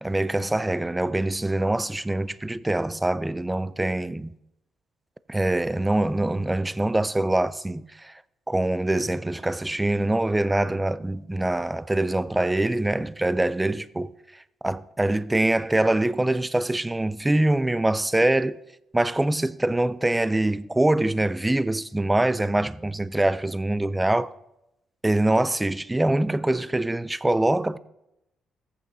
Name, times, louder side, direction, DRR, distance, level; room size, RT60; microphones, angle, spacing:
voice 1, 0.0-4.3 5.3-8.1 8.5-14.1 14.6-18.6 18.9-24.3 25.0-27.8, right 1 dB, 10° right, 0.3 m, -24 dB
14.5 x 8.4 x 2.7 m
cardioid pair, 90°, 0 cm